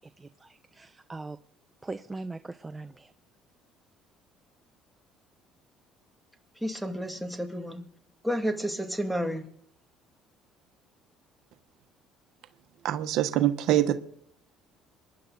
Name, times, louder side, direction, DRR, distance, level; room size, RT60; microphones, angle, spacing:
voice 1, 0.0-1.4 1.8-3.1, right 3 dB, 20° right, 0.7 m, -40 dB
voice 2, 6.5-7.9 8.2-9.5, equal, ahead, 2.5 m, -31 dB
voice 3, 12.8-13.9, right 12 dB, 70° right, 1.3 m, -24 dB
27.0 x 11.0 x 4.1 m
supercardioid pair, 75°, 0 cm